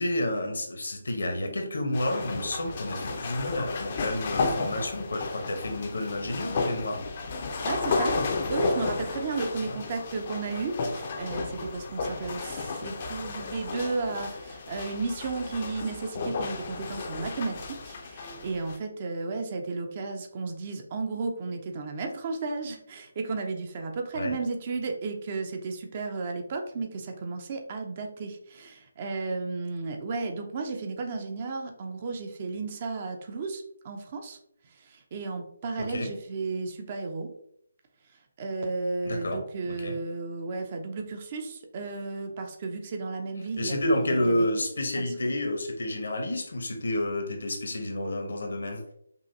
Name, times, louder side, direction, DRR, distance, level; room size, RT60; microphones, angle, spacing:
voice 1, 0.0-7.0 24.1-24.4 35.8-36.1 39.0-39.4 39.8-40.0 43.6-48.8, left 1 dB, 60° left, 4 dB, 0.9 m, -30 dB
sound 1, 1.9-18.8, left 3 dB, 35° left, 0.6 m, -33 dB
voice 2, 7.6-34.4 34.6-37.3 38.4-44.5 44.9-45.1, right 3 dB, 35° right, 4 dB, 0.6 m, -34 dB
5.4 x 2.5 x 2.7 m, 0.70 s
figure-of-eight pair, 150°, 0 cm